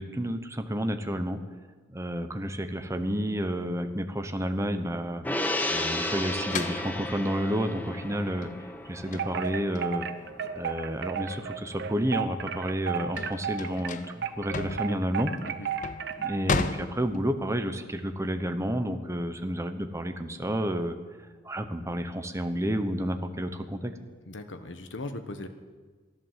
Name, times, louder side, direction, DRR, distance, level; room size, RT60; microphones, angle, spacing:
voice 1, 0.0-1.4 1.9-5.2 5.7-8.5 8.8-10.0 10.5-15.3 16.2-20.9 21.4-23.9, equal, 15° right, 8 dB, 0.9 m, -30 dB
Gong, 5.2-11.9 12.2-12.3, left 1 dB, 10° left, 1.1 m, -34 dB
sound 1, 6.5-11.5 11.9-17.5, left 4 dB, 40° left, 0.7 m, -35 dB
Wind chime, 9.1-16.5, right 7 dB, 60° right, 0.8 m, -34 dB
voice 2, 24.3-25.5, left 2 dB, 75° left, 8 dB, 1.2 m, -38 dB
14.0 x 11.0 x 7.4 m, 1.4 s
head